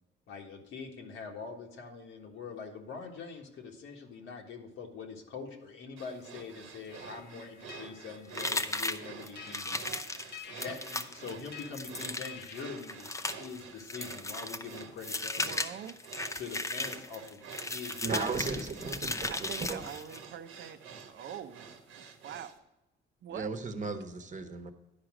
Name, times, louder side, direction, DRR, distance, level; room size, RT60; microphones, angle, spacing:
voice 1, 0.3-10.0 10.3-15.6 16.3-17.4 17.7-18.7, left 5 dB, 80° left, 1.6 m, -44 dB
sound 1, 6.0-22.6, right 6 dB, 90° right, 1.2 m, -49 dB
As the life leaves me, 6.9-13.5, left 9 dB, 55° left, 0.9 m, -52 dB
sound 2, 8.3-20.3, left 2 dB, 15° left, 0.6 m, -36 dB
voice 2, 15.4-16.0 17.7-17.8 19.3-20.8 21.1-21.7 22.0-22.5 23.2-23.5 23.9-24.0, right 9 dB, 60° right, 0.7 m, -44 dB
voice 3, 18.0-19.9 23.3-24.7, right 4 dB, 40° right, 1.1 m, -35 dB
10.5 x 4.9 x 6.1 m
cardioid pair, 90°, 20 cm